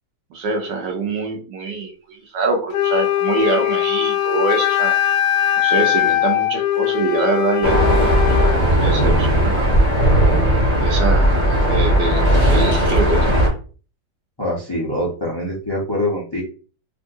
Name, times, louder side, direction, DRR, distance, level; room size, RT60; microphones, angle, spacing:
voice 1, 0.3-4.9 5.6-9.7 10.8-11.4 11.7-13.4, right 3 dB, 75° right, 3 dB, 1.5 m, -24 dB
Wind instrument woodwind instrument, 2.7-8.6, left 12 dB, 85° left, 1.3 m, -20 dB
sound 1, 7.6-13.5, equal, 5° right, 1.2 m, -16 dB
voice 2, 14.4-16.4, left 1 dB, 30° left, -4 dB, 0.4 m, -24 dB
3.5 x 2.5 x 2.6 m, 0.38 s
omnidirectional pair, 1.9 m